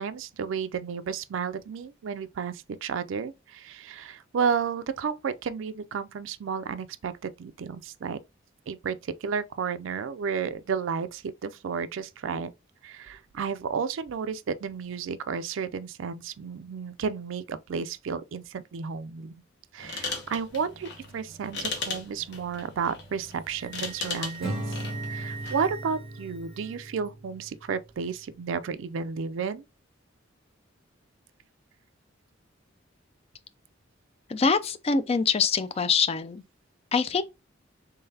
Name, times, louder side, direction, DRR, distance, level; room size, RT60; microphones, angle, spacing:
voice 1, 0.0-8.2 8.7-12.5 12.8-19.3 19.7-24.8 25.1-29.6, right 6 dB, 75° right, 0.4 m, -32 dB
sound 1, 19.8-25.7, left 4 dB, 60° left, 1.1 m, -38 dB
Wind instrument woodwind instrument, 23.1-27.1, right 7 dB, 30° right, 1.0 m, -44 dB
Acoustic guitar / Strum, 24.4-27.7, right 1 dB, ahead, 1.9 m, -37 dB
voice 2, 34.3-36.4 36.9-37.2, left 5 dB, 30° left, 0.3 m, -24 dB
3.8 x 3.4 x 2.7 m
head